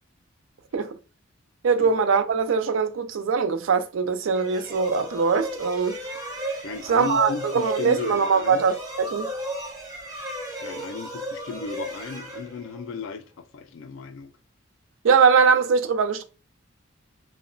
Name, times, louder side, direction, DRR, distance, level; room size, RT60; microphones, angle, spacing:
voice 1, 1.6-6.0 6.9-9.3 15.0-16.2, right 5 dB, 70° right, 0.4 m, -22 dB
sound 1, 4.3-13.0, right 1 dB, 15° right, 0.6 m, -35 dB
voice 2, 6.6-8.7 10.6-14.3, left 5 dB, 65° left, 0.3 m, -35 dB
2.8 x 2.1 x 2.5 m
head